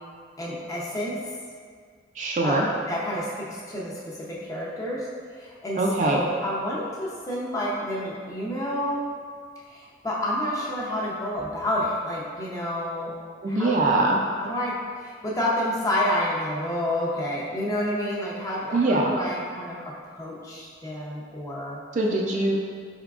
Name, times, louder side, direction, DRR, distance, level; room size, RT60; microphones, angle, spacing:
voice 1, 0.4-1.1 2.4-2.6 2.9-5.0 5.3-9.0 9.7-13.1 13.5-13.9 14.4-19.8 20.1-21.8, left 1 dB, 20° left, -5 dB, 0.6 m, -29 dB
voice 2, 2.2-2.7 5.8-6.2 13.4-14.2 18.7-19.1 21.9-22.6, right 2 dB, 40° right, -1 dB, 0.3 m, -22 dB
4.8 x 3.6 x 2.3 m, 2.1 s
head